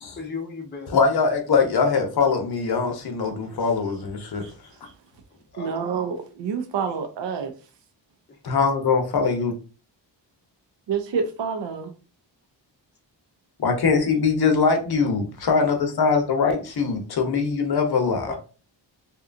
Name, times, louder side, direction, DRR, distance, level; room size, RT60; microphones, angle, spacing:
voice 1, 0.1-1.2 5.3-5.9 6.9-7.0 8.3-8.4 18.2-18.4, left 4 dB, 25° left, 0.6 m, -37 dB
voice 2, 0.9-4.4 8.4-9.5 13.6-18.3, left 5 dB, 55° left, 0.8 m, -22 dB
voice 3, 5.6-7.5 10.9-11.9, right 6 dB, 70° right, 0.6 m, -27 dB
2.8 x 2.2 x 2.5 m
cardioid pair, 80°, 45 cm